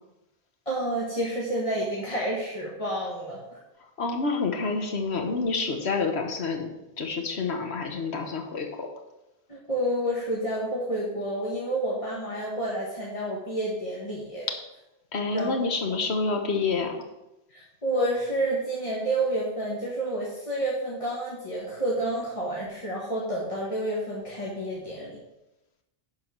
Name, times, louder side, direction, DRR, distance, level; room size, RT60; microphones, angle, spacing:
voice 1, 0.7-3.4 9.5-14.5 15.3-15.6 17.5-25.2, right 1 dB, 30° left, -6 dB, 1.8 m, -29 dB
voice 2, 4.0-6.7 7.0-8.9 15.1-17.0, left 4 dB, 85° left, 4 dB, 1.6 m, -28 dB
11.0 x 4.8 x 6.1 m, 0.94 s
omnidirectional pair, 1.1 m